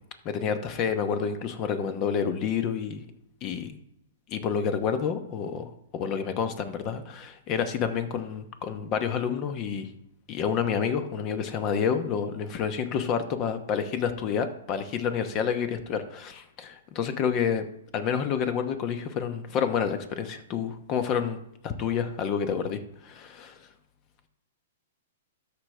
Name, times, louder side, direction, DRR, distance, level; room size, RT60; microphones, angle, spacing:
voice 1, 0.2-3.0 3.4-3.8 4.3-9.9 10.3-17.6 17.9-21.4 21.6-23.6, left 7 dB, 35° left, 9 dB, 1.0 m, -29 dB
13.0 x 5.0 x 3.4 m, 0.77 s
hypercardioid pair, 135°, 0 cm